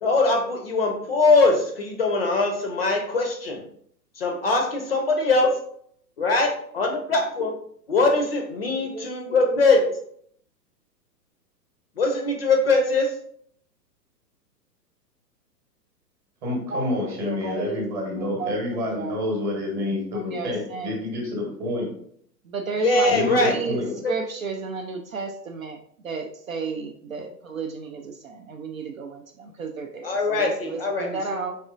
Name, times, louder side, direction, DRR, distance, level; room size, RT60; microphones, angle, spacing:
voice 1, 0.0-3.6 4.2-5.5 6.2-7.5 7.9-9.9 12.0-13.1 22.8-23.5 24.0-24.1 30.0-31.1, left 3 dB, 40° left, 2 dB, 0.5 m, -22 dB
voice 2, 8.7-9.1 9.5-9.6 16.4-16.9 17.2-17.8 18.2-18.5 18.9-19.3 20.1-21.0 22.5-23.8 24.1-25.8 26.0-31.6, right 4 dB, 55° right, 4 dB, 0.5 m, -32 dB
voice 3, 16.4-21.9 23.1-23.9, left 1 dB, 20° right, 0 dB, 1.0 m, -28 dB
4.2 x 3.2 x 2.4 m, 0.65 s
figure-of-eight pair, 115°, 50 cm